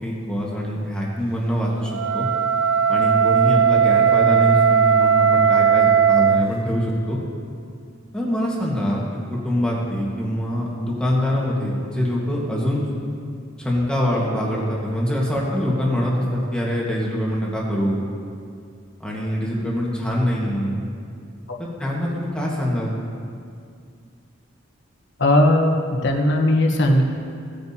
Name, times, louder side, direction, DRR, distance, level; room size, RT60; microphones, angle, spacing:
voice 1, 0.0-2.3 2.9-7.2 8.1-9.0 9.3-12.8 13.6-18.0 19.0-20.8 21.8-22.9, equal, 5° left, -5 dB, 1.6 m, -24 dB
Wind instrument woodwind instrument, 1.9-6.5, right 7 dB, 75° right, 0.4 m, -17 dB
voice 2, 25.2-25.8 26.0-27.0, left 1 dB, 60° left, 2 dB, 1.2 m, -17 dB
17.5 x 8.9 x 2.9 m, 2.3 s
head